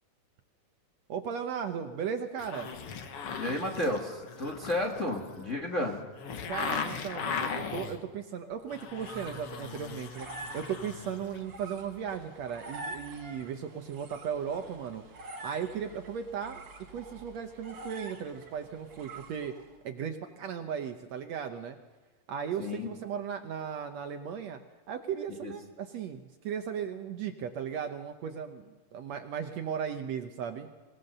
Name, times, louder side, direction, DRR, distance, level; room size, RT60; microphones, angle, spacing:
voice 1, 1.1-2.7 6.5-10.3 10.5-15.0 15.4-16.6 16.9-19.6 19.8-21.8 22.3-24.6 24.9-30.7, right 7 dB, 70° right, 6 dB, 1.8 m, -36 dB
sound 1, 2.4-8.0 8.5-11.4 11.7-11.8, left 6 dB, 55° left, 1.9 m, -38 dB
voice 2, 3.4-6.0 22.6-22.9 25.3-25.5, left 1 dB, 35° left, 1 dB, 1.4 m, -32 dB
sound 2, 8.6-19.8, right 2 dB, 40° right, 2.2 m, -47 dB
24.5 x 17.5 x 6.6 m, 1.3 s
omnidirectional pair, 3.7 m